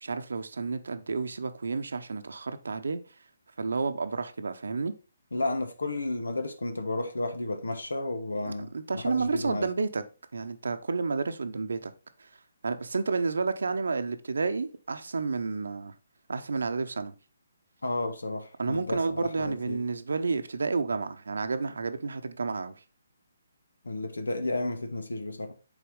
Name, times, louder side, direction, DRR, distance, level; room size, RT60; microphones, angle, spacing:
voice 1, 0.0-3.0 3.6-4.9 8.7-10.0 10.3-11.9 12.6-15.9 16.3-17.1 18.6-22.8, right 4 dB, 75° right, 0.8 m, -30 dB
voice 2, 5.3-9.7 17.8-19.8 23.8-25.5, left 2 dB, 85° left, 1.1 m, -32 dB
7.1 x 4.2 x 3.6 m
hypercardioid pair, 150°, 0 cm